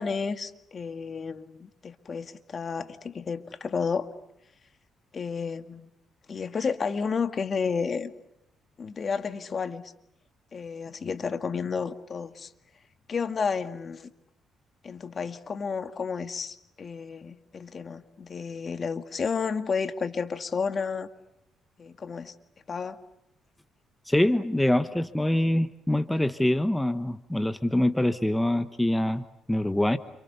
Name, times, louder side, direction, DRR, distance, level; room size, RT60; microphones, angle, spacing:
voice 1, 0.0-4.1 5.1-5.9 6.3-8.1 8.8-9.8 10.5-12.5 13.1-14.1 14.8-21.1 21.8-22.3 22.7-23.0, left 5 dB, 40° left, 9 dB, 1.9 m, -31 dB
voice 2, 24.1-30.0, left 1 dB, 5° left, 11 dB, 1.1 m, -25 dB
29.5 x 27.5 x 6.9 m, 0.80 s
cardioid pair, 90°, 0 cm